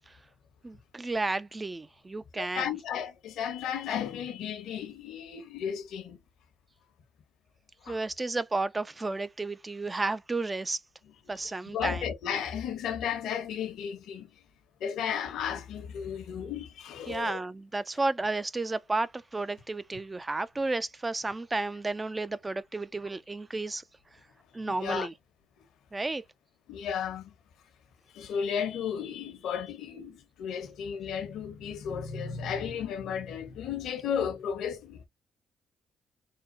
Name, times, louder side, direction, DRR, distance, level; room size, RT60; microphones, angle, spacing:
voice 1, 0.6-2.6 7.9-10.8 11.3-12.0 17.0-23.8 24.5-25.1 25.9-26.2, right 3 dB, 20° right, 0.4 m, -32 dB
voice 2, 2.3-6.2 7.8-8.0 11.3-14.3 14.8-17.4 24.6-25.1 26.7-27.3 28.1-35.1, left 8 dB, 80° left, 1.1 m, -34 dB
3.8 x 2.1 x 4.0 m
cardioid pair, 90°, 0 cm